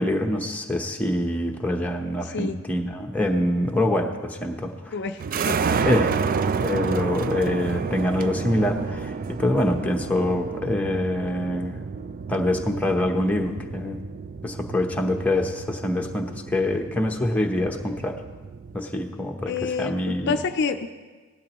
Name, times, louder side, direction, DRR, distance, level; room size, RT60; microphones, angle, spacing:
voice 1, 0.0-4.9 5.8-11.8 12.3-14.0 14.4-18.2 18.7-19.5 19.8-20.4, left 1 dB, 5° left, 1 dB, 0.9 m, -25 dB
voice 2, 2.2-2.6 4.9-5.6 19.5-20.9, left 5 dB, 55° left, 7 dB, 0.4 m, -28 dB
sound 1, 5.2-18.8, right 5 dB, 40° right, 0.4 m, -30 dB
17.5 x 12.0 x 3.0 m, 1.4 s
head